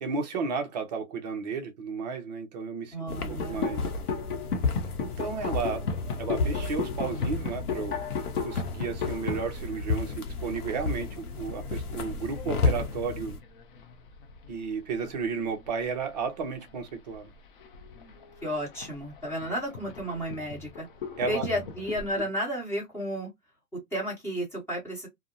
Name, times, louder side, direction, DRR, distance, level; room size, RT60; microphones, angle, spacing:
voice 1, 0.0-3.0 3.3-3.8 5.0-5.8 6.2-8.0 8.4-11.1 11.3-13.4 14.5-17.3 21.2-21.4, right 5 dB, 30° right, 0.5 m, -33 dB
voice 2, 2.9-3.6 18.4-20.9 21.3-23.3 23.7-25.1, equal, 5° left, 1.0 m, -32 dB
sound 1, 3.1-13.4, left 4 dB, 85° left, 0.8 m, -32 dB
sound 2, 3.2-14.6 14.9-15.3 15.6-22.2, left 5 dB, 40° left, 0.5 m, -37 dB
2.6 x 2.0 x 2.5 m
hypercardioid pair, 140°, 44 cm